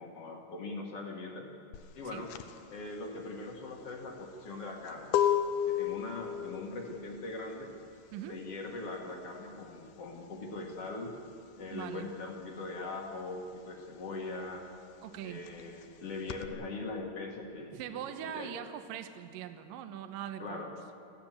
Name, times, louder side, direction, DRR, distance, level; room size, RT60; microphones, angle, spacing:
voice 1, 0.0-1.5 1.9-2.3 2.7-5.1 5.7-7.7 8.3-11.1 11.6-14.7 15.2-18.5 20.4-20.7, left 2 dB, 50° left, 1 dB, 2.0 m, -41 dB
sound 1, 1.7-12.0 12.2-16.5, left 10 dB, 75° left, 2.4 m, -35 dB
voice 2, 8.1-8.4 11.7-12.1 15.0-15.5 17.7-20.8, right 10 dB, 75° right, 8 dB, 2.3 m, -42 dB
25.5 x 16.0 x 7.5 m, 2.6 s
omnidirectional pair, 4.7 m